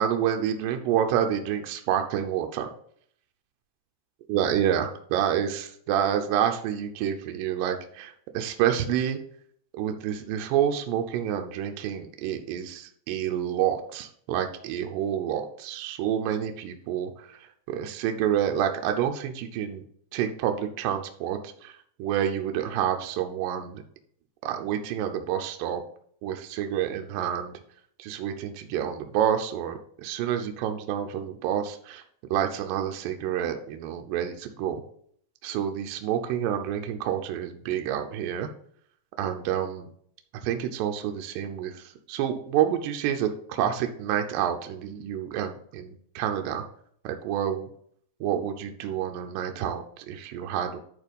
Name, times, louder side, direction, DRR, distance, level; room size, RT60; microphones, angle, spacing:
voice 1, 0.0-2.7 4.3-9.2 9.7-17.4 17.7-19.8 20.1-21.7 22.0-23.8 24.4-25.8 26.2-27.5 28.0-32.0 32.3-34.8 35.4-38.5 39.2-39.9 40.4-46.6 47.0-47.7 48.2-50.8, right 9 dB, 75° right, 5 dB, 2.2 m, -28 dB
10.5 x 3.8 x 5.2 m, 0.63 s
omnidirectional pair, 4.4 m